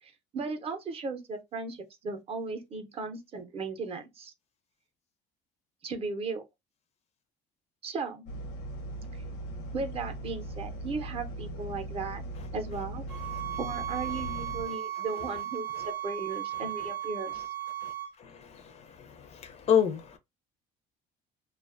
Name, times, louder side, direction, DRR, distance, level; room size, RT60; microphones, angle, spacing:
voice 1, 0.0-4.3 5.8-6.4 7.8-8.3 9.7-12.2 12.5-13.0 13.6-17.4, right 4 dB, 35° right, 0.5 m, -36 dB
sound 1, 8.3-14.7, right 1 dB, 90° left, 0.7 m, -39 dB
sound 2, 13.1-18.1, right 11 dB, 90° right, 0.7 m, -36 dB
voice 2, 19.3-20.2, left 8 dB, 40° left, 0.4 m, -25 dB
2.4 x 2.2 x 2.4 m
cardioid pair, 125°, 16 cm